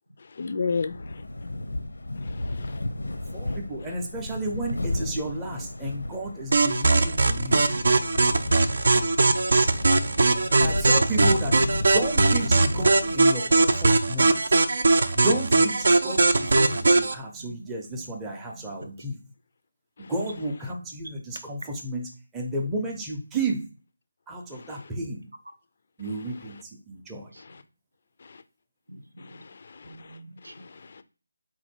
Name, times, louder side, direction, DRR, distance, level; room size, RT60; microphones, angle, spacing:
voice 1, 0.4-0.9 2.2-2.8 3.5-3.6 8.4-9.0 9.7-10.5 20.0-20.1 24.5-24.7 28.2-28.4 29.2-30.2 30.4-31.0, left 4 dB, 45° left, 0.4 m, -35 dB
sound 1, 0.8-13.5, left 1 dB, 85° left, 0.7 m, -34 dB
voice 2, 3.3-7.6 10.5-11.5 11.8-14.6 15.1-19.2 20.1-23.6 24.3-25.3 26.0-27.3, right 1 dB, 10° right, 0.6 m, -32 dB
sound 2, 6.5-17.1, right 3 dB, 60° right, 0.5 m, -20 dB
voice 3, 17.1-18.1 18.5-18.9 27.3-27.4 28.9-29.4 29.8-30.7, equal, 90° right, 0.8 m, -48 dB
4.2 x 2.6 x 4.3 m
figure-of-eight pair, 165°, 0 cm